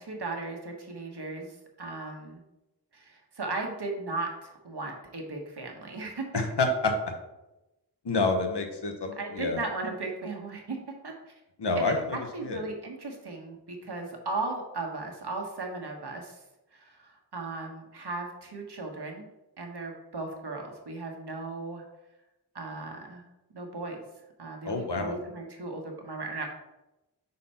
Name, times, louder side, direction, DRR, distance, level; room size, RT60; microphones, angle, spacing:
voice 1, 0.0-2.4 2.9-6.3 9.2-10.8 11.0-11.3 11.8-16.4 16.7-19.3 19.6-21.8 22.5-23.3 23.5-24.0 24.4-26.5, right 3 dB, 70° right, 2 dB, 1.3 m, -36 dB
voice 2, 6.3-6.9 8.0-9.6 11.6-12.2 12.4-12.6 24.7-25.2, left 3 dB, 75° left, 4 dB, 1.1 m, -28 dB
5.5 x 4.1 x 5.6 m, 0.97 s
wide cardioid pair, 60°, 41 cm